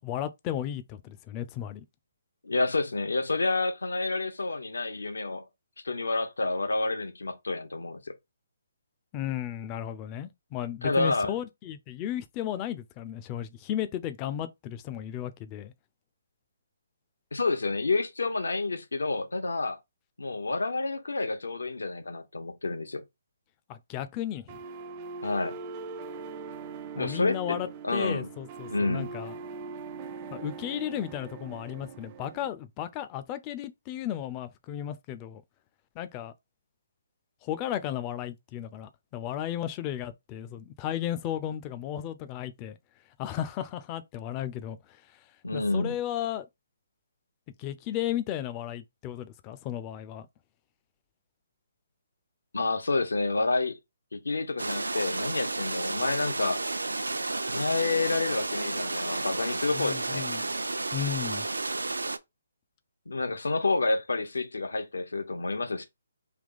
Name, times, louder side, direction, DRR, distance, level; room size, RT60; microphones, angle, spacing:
voice 1, 0.0-1.8 9.1-15.7 23.7-24.6 26.9-29.3 30.3-35.4 36.0-36.3 37.4-42.8 43.2-44.8 45.5-46.5 47.6-50.3 59.7-60.5 60.9-61.5, left 11 dB, 25° left, 0.5 m, -34 dB
voice 2, 2.4-5.4 5.8-8.1 10.8-11.3 17.3-19.8 20.2-23.0 25.2-25.6 27.0-28.3 28.7-29.1 45.4-45.9 52.5-53.8 54.1-56.6 57.4-60.3 63.1-65.8, left 3 dB, 75° left, 1.0 m, -29 dB
sound 1, 24.5-32.5, right 5 dB, 30° right, 0.5 m, -41 dB
sound 2, 54.6-62.2, right 2 dB, 80° right, 0.6 m, -32 dB
3.4 x 2.9 x 4.0 m
figure-of-eight pair, 140°, 0 cm